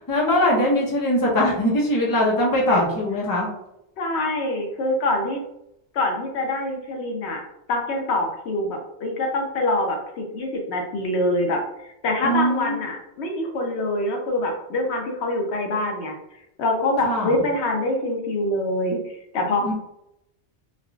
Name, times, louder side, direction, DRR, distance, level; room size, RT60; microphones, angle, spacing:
voice 1, 0.0-3.5 12.2-12.8 17.0-17.4 19.6-19.7, left 1 dB, 25° left, -3 dB, 0.6 m, -21 dB
voice 2, 4.0-5.4 5.9-7.4 7.7-11.6 12.0-16.2 16.6-19.0 19.3-19.7, left 2 dB, 75° left, 2 dB, 0.9 m, -25 dB
3.6 x 2.4 x 2.2 m, 0.84 s
omnidirectional pair, 1.1 m